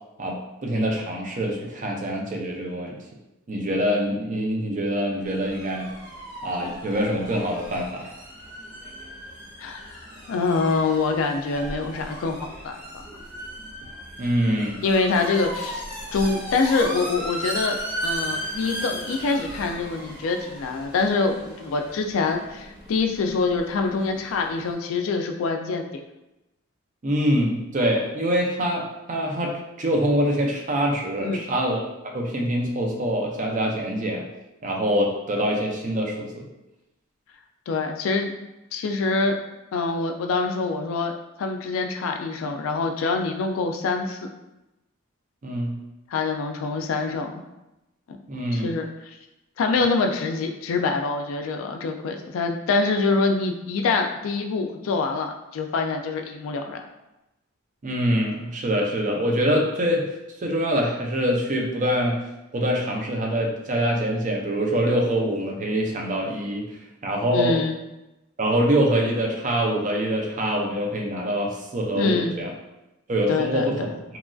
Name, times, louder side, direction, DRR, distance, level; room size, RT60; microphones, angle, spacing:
voice 1, 0.2-3.0 3.5-5.9 6.4-8.1 14.2-14.8 27.0-34.2 34.6-36.5 45.4-45.8 48.3-48.7 57.8-60.1 60.4-62.2 62.5-66.7 67.0-67.6 68.4-72.5 73.1-73.9, equal, 35° right, 0 dB, 0.4 m, -24 dB
sound 1, 5.2-24.7, right 1 dB, 15° right, 0.9 m, -36 dB
voice 2, 9.6-10.0 10.3-12.8 14.8-15.8 16.1-25.9 31.2-31.4 37.7-38.3 38.7-39.4 39.7-41.1 41.4-44.3 46.1-47.4 48.1-48.2 48.5-48.9 49.6-56.8 67.3-67.8 72.0-72.4 73.3-73.9, left 4 dB, 70° left, 4 dB, 0.3 m, -25 dB
3.0 x 2.5 x 2.3 m, 0.96 s
head